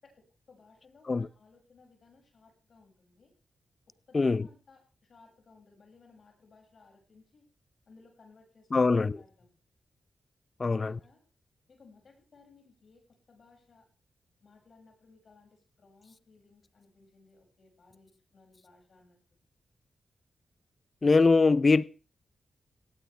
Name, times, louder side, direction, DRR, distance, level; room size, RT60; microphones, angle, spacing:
voice 1, 0.0-3.3 3.9-7.4 7.9-9.5 10.6-11.2 11.7-13.9 14.4-19.2, left 4 dB, 60° left, 6.6 m, -60 dB
voice 2, 4.1-4.5 8.7-9.2 10.6-11.0 21.0-21.8, left 3 dB, 40° left, 0.7 m, -23 dB
17.0 x 16.5 x 3.4 m
cardioid pair, 55°, 0 cm